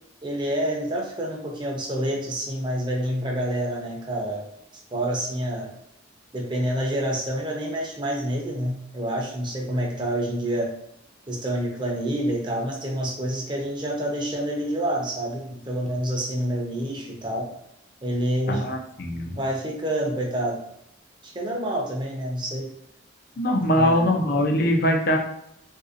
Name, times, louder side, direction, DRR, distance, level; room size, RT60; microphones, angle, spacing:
voice 1, 0.2-4.5 4.9-5.7 6.3-10.7 11.3-17.5 18.0-18.7 19.4-20.6 21.2-22.7 23.7-24.2, right 1 dB, 25° right, -1 dB, 0.6 m, -28 dB
voice 2, 18.5-19.4 23.4-25.2, left 1 dB, 50° left, 2 dB, 0.5 m, -22 dB
3.8 x 2.7 x 2.5 m, 0.74 s
head